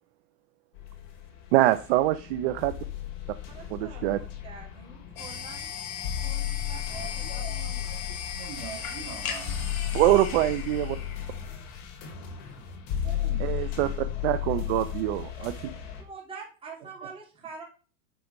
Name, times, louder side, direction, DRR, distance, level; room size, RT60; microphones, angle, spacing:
sound 1, 0.7-16.0, left 10 dB, 45° left, 2.5 m, -35 dB
voice 1, 1.5-2.7 3.7-4.2 9.9-11.0 13.4-15.5, right 15 dB, 50° right, 10 dB, 0.7 m, -24 dB
voice 2, 3.5-5.7 6.2-6.8 7.3-7.9 16.0-17.6, right 5 dB, 15° right, -3 dB, 2.9 m, -45 dB
sound 2, 5.2-11.8, left 7 dB, 85° left, 2.8 m, -38 dB
voice 3, 6.6-10.0 13.0-13.6 14.4-14.8, right 7 dB, 75° right, 4 dB, 2.9 m, -44 dB
9.2 x 4.6 x 5.4 m, 0.36 s
supercardioid pair, 145°, 41 cm